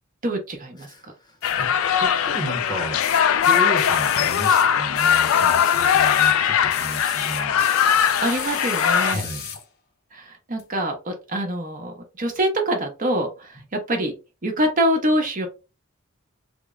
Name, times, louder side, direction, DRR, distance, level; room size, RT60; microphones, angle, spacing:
voice 1, 0.2-1.1 8.2-9.2 10.1-14.1 14.4-15.5, right 1 dB, 40° right, 0.9 m, -25 dB
voice 2, 0.8-1.7 2.0-3.0 3.4-7.6 9.1-9.5, equal, 20° left, 0.7 m, -33 dB
sound 1, 1.4-9.2, left 8 dB, 75° left, 0.3 m, -20 dB
sound 2, 1.4-1.5 3.0-6.4 6.7-9.6 10.6-10.7, left 7 dB, 50° left, 0.7 m, -35 dB
3.5 x 2.1 x 3.6 m
head